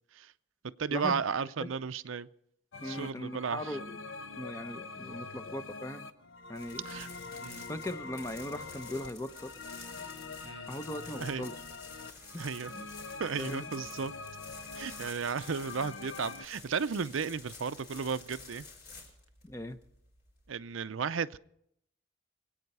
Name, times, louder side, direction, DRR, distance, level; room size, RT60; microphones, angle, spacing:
voice 1, 0.8-2.3 2.8-3.8 6.8-7.1 7.4-7.6 10.4-10.7 11.2-11.5 12.4-12.7 13.2-14.1 14.8-18.7 20.5-21.4, right 6 dB, 85° right, 14 dB, 0.6 m, -34 dB
sound 1, 2.7-16.5, left 4 dB, 80° left, 0.9 m, -44 dB
voice 2, 2.8-4.0 4.4-6.1 6.5-6.8 7.7-9.6 10.7-11.5 12.3-12.4 12.7-12.8 13.4-13.7 19.4-19.8, left 1 dB, 15° left, 9 dB, 0.7 m, -39 dB
sound 2, 6.5-20.5, left 4 dB, 50° left, 4.3 m, -51 dB
25.0 x 8.9 x 5.4 m, 0.71 s
head